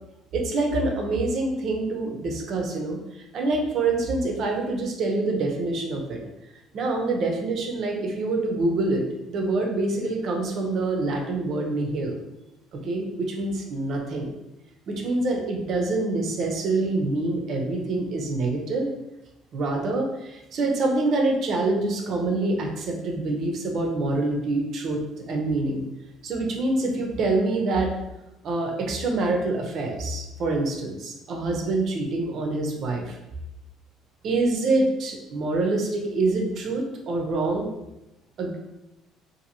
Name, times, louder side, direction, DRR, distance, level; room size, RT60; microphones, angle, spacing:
voice 1, 0.3-6.2 6.7-12.2 12.7-14.3 14.9-18.9 19.5-25.8 26.2-27.9 28.4-33.2 34.2-37.7 38.4-38.6, right 2 dB, 50° right, 1 dB, 0.6 m, -26 dB
2.8 x 2.6 x 2.6 m, 0.94 s
cardioid pair, 140°, 0 cm